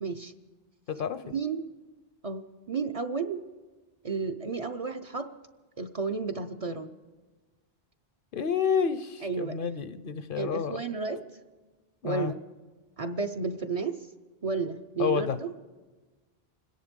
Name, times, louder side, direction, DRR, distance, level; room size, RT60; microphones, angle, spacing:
voice 1, 0.0-0.3 1.3-1.6 2.2-3.4 4.0-5.3 5.8-6.9 9.2-9.6 10.4-11.2 12.0-12.4 13.0-14.0 14.4-15.5, right 4 dB, 40° right, 6 dB, 0.6 m, -32 dB
voice 2, 8.3-10.8 12.0-12.3 15.0-15.4, left 7 dB, 65° left, 12 dB, 0.8 m, -29 dB
26.0 x 10.5 x 5.1 m, 1.3 s
omnidirectional pair, 1.0 m